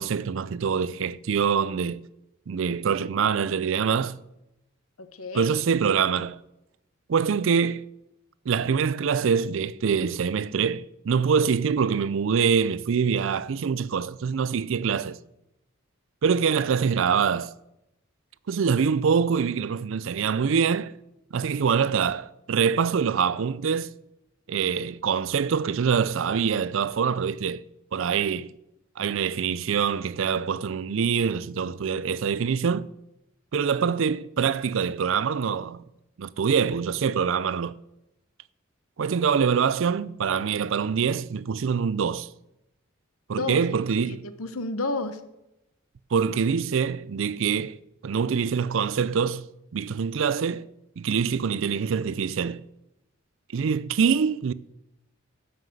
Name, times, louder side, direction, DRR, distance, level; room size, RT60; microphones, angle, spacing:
voice 1, 0.0-2.0 2.5-4.2 5.3-6.4 7.1-7.8 8.5-15.2 16.2-17.5 18.5-20.9 21.3-23.9 24.5-27.6 27.9-28.5 29.0-32.9 33.5-35.8 36.2-37.8 39.0-42.3 43.3-44.3 46.1-47.8 48.0-50.7 51.0-52.6 53.5-54.5, right 6 dB, 65° right, 0.4 m, -25 dB
voice 2, 5.0-5.5 43.4-43.6 44.1-45.2, left 3 dB, 85° left, 1.0 m, -31 dB
10.5 x 5.8 x 7.6 m
head